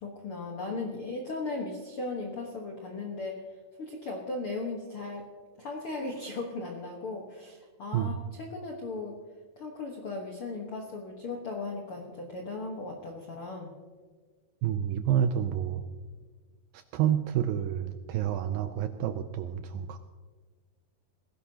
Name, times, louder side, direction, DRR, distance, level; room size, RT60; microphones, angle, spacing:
voice 1, 0.0-3.4 3.8-5.3 5.6-9.2 9.6-13.7, left 3 dB, 70° left, 0 dB, 1.3 m, -37 dB
voice 2, 14.6-15.8 16.7-20.0, right 10 dB, 80° right, 9 dB, 2.1 m, -29 dB
19.5 x 16.0 x 2.9 m, 1.5 s
omnidirectional pair, 4.6 m